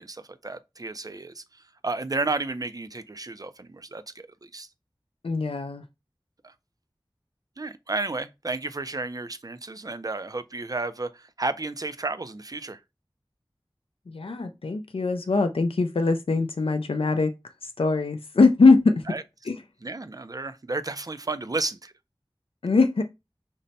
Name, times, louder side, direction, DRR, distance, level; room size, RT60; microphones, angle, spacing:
voice 1, 0.0-4.7 6.4-6.5 7.6-12.8 19.1-19.2 19.8-21.9, right 3 dB, 40° right, 0.4 m, -32 dB
voice 2, 5.2-5.8 14.1-17.3 17.6-19.0 19.4-19.6 22.6-23.0, left 3 dB, 80° left, 0.4 m, -22 dB
5.2 x 2.1 x 4.0 m
wide cardioid pair, 45°, 9 cm